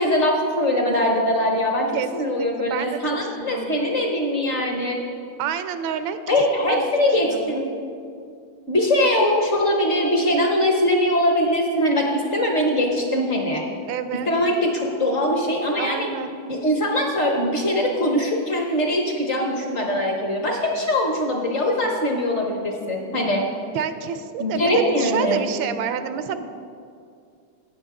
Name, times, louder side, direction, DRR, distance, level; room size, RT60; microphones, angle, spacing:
voice 1, 0.0-5.0 6.3-7.6 8.7-13.6 14.3-16.1 16.5-23.4 24.4-25.4, left 1 dB, 45° left, 1 dB, 1.0 m, -22 dB
voice 2, 1.9-3.9 5.4-6.4 6.7-6.9 7.2-7.6 13.9-14.3 15.8-16.3 23.7-26.5, right 8 dB, 85° right, 11 dB, 1.4 m, -29 dB
17.0 x 6.0 x 3.7 m, 2.3 s
omnidirectional pair, 2.1 m